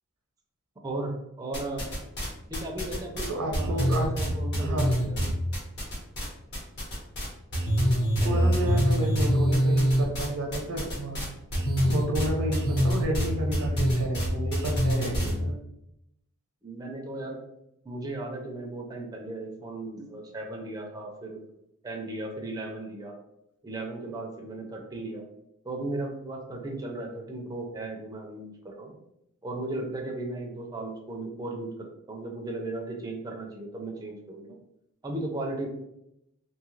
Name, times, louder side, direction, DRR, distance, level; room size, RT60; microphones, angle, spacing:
voice 1, 0.8-1.9 2.5-5.3 8.2-8.8 16.6-17.4 17.8-21.4 21.8-23.1 23.6-25.2 25.6-28.9 29.4-34.6 35.0-35.7, right 2 dB, 15° right, 1 dB, 0.4 m, -36 dB
sound 1, 1.5-2.3 2.5-6.3 6.5-7.3 7.5-15.3, equal, 50° left, 1.0 m, -25 dB
voice 2, 3.3-4.1 4.6-5.2 8.2-11.3 11.8-15.6, right 1 dB, 90° right, 2 dB, 0.6 m, -31 dB
2.7 x 2.3 x 3.1 m, 0.83 s
head